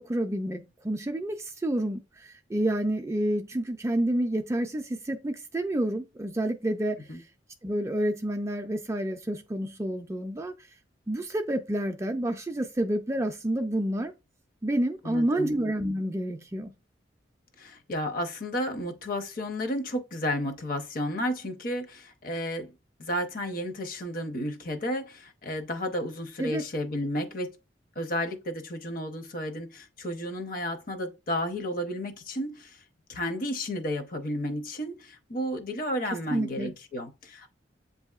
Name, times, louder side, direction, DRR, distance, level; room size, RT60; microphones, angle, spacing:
voice 1, 0.0-7.1 7.6-10.5 11.1-14.1 14.6-16.7 26.4-26.6 36.3-36.7, right 1 dB, 15° right, 0.3 m, -29 dB
voice 2, 15.0-15.6 17.6-22.7 23.0-27.6 28.0-32.8 33.1-37.5, equal, 45° left, 0.7 m, -32 dB
7.7 x 2.7 x 2.4 m
head